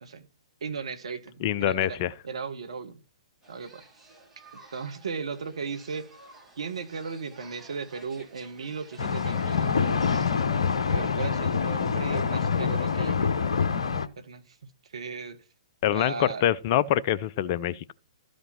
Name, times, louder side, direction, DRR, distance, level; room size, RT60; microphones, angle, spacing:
voice 1, 0.6-2.0 2.2-3.0 3.5-3.8 4.7-6.1 6.6-10.3 10.9-13.5 14.2-14.6 14.9-15.4 15.9-16.4, right 5 dB, 65° right, 1.6 m, -36 dB
voice 2, 1.4-2.1 15.8-17.9, left 11 dB, 35° left, 0.5 m, -25 dB
sound 1, 3.4-10.9, right 2 dB, 10° right, 4.1 m, -52 dB
sound 2, 9.0-14.1, left 6 dB, 60° left, 1.0 m, -26 dB
13.0 x 5.2 x 5.8 m
figure-of-eight pair, 120°, 3 cm